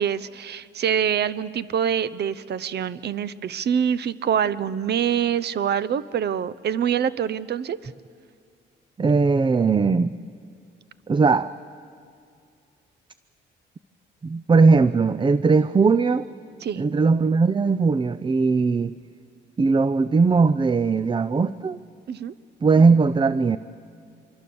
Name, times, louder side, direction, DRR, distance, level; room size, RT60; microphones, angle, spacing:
voice 1, 0.0-7.8 16.6-16.8 22.1-22.3, right 8 dB, 60° right, 17 dB, 0.8 m, -25 dB
voice 2, 9.0-10.1 11.1-11.6 14.2-16.3 16.8-19.0 19.6-21.8 22.6-23.6, right 4 dB, 25° right, 15 dB, 0.5 m, -19 dB
26.5 x 23.5 x 7.0 m, 2.3 s
cardioid pair, 90°, 20 cm